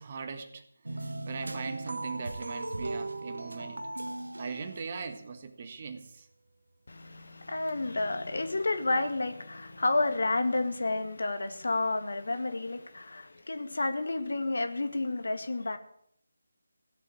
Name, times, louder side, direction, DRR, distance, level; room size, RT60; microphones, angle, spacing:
voice 1, 0.0-3.9 4.4-6.3, right 5 dB, 35° right, 1.6 m, -40 dB
sound 1, 0.8-5.4, right 2 dB, 70° right, 1.4 m, -38 dB
voice 2, 6.9-15.8, left 2 dB, 60° left, 1.8 m, -30 dB
16.5 x 8.2 x 8.6 m
figure-of-eight pair, 155°, 0 cm